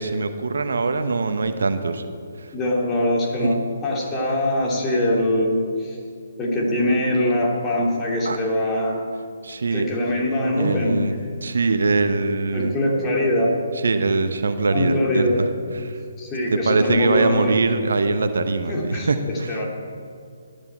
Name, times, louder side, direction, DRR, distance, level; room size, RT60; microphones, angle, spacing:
voice 1, 0.0-2.1 2.4-2.5 3.4-3.5 8.2-8.4 9.4-9.9 10.6-11.1 11.4-12.7 13.8-15.5 15.8-16.0 16.5-19.6, right 3 dB, 65° right, 9 dB, 1.0 m, -22 dB
voice 2, 2.5-6.0 6.4-9.0 9.7-11.1 12.5-13.6 14.7-15.4 16.2-17.5 18.7-19.7, left 1 dB, 15° left, -2 dB, 2.7 m, -22 dB
18.0 x 12.0 x 4.5 m, 2.2 s
figure-of-eight pair, 135°, 0 cm